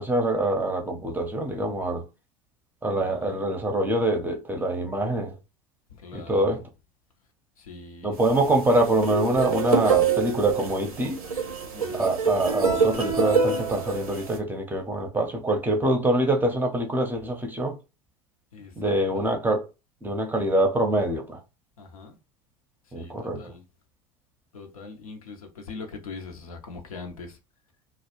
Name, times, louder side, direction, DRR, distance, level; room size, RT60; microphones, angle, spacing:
voice 1, 0.0-2.0 2.8-5.4 6.1-6.6 8.0-11.2 11.9-17.8 18.8-19.7 20.0-21.4 22.9-23.5, right 1 dB, 10° right, 0.6 m, -25 dB
voice 2, 3.0-3.5 5.9-6.7 7.6-8.5 11.7-12.2 18.5-19.3 21.8-22.2 22.8-23.6 24.5-27.4, left 4 dB, 80° left, 0.6 m, -42 dB
sound 1, 8.2-14.4, right 6 dB, 90° right, 0.6 m, -26 dB
2.3 x 2.0 x 2.9 m
figure-of-eight pair, 75°, 18 cm